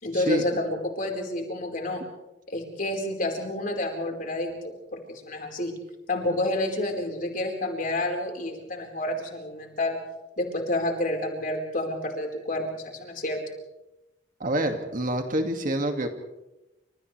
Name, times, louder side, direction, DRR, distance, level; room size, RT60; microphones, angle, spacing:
voice 1, 0.0-2.0 2.5-5.7 6.1-10.0 10.4-13.4, left 1 dB, 50° left, 1 dB, 4.6 m, -29 dB
voice 2, 14.4-16.1, right 1 dB, 50° right, 5 dB, 2.2 m, -26 dB
29.5 x 27.0 x 3.4 m, 0.95 s
head